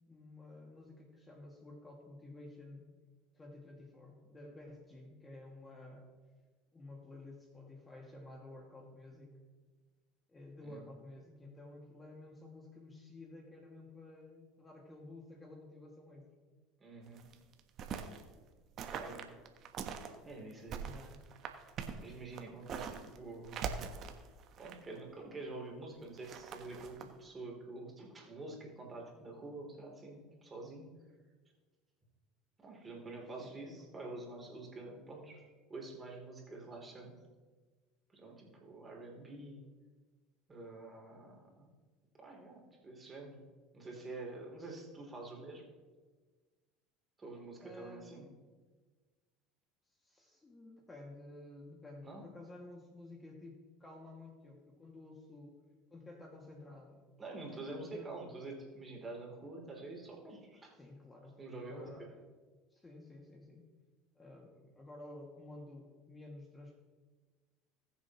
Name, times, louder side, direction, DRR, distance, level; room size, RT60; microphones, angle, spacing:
voice 1, 0.1-2.9 3.3-6.0 6.7-9.4 10.3-16.3 20.8-21.2 33.4-34.1 47.6-48.3 50.0-55.6 55.9-57.0 57.3-58.1 60.8-61.4 61.7-62.2 62.7-63.7 64.2-66.8, left 2 dB, 20° left, 0 dB, 2.2 m, -52 dB
voice 2, 16.8-17.2 18.9-19.3 20.2-20.9 22.0-23.7 24.6-30.9 32.6-37.2 38.1-39.7 40.5-41.7 42.2-43.4 43.7-45.6 47.2-48.3 52.0-52.3 57.2-60.7 61.4-61.9, right 2 dB, 25° right, 0 dB, 3.3 m, -47 dB
sound 1, 17.1-18.2 18.8-20.1 20.5-23.2 23.4-25.0 26.0-27.0, right 7 dB, 50° right, 1.2 m, -43 dB
20.5 x 7.1 x 3.1 m, 1.4 s
hypercardioid pair, 75°, 0 cm